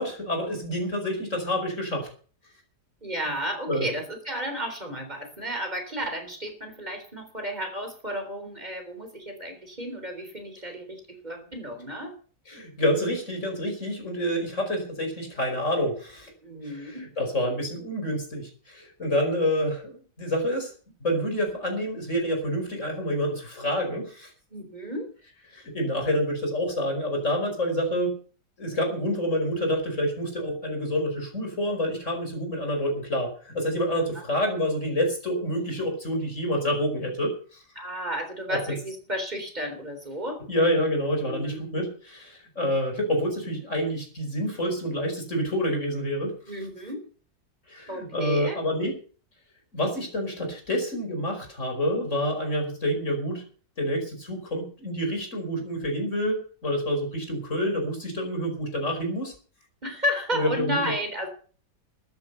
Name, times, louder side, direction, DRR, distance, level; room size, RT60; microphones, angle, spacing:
voice 1, 0.0-2.1 3.7-3.9 12.5-16.3 16.6-20.7 21.0-24.3 25.5-28.2 28.6-37.6 38.5-38.6 40.5-46.4 47.7-49.0 49.7-53.4 53.8-59.3 60.3-60.8, equal, 45° left, 3 dB, 5.5 m, -28 dB
voice 2, 3.0-12.1 16.4-17.1 24.5-25.1 33.9-34.2 37.8-40.4 41.2-41.6 46.5-47.0 47.9-48.6 59.8-61.3, equal, 25° right, 5 dB, 3.9 m, -33 dB
13.5 x 10.5 x 6.7 m, 0.42 s
omnidirectional pair, 1.8 m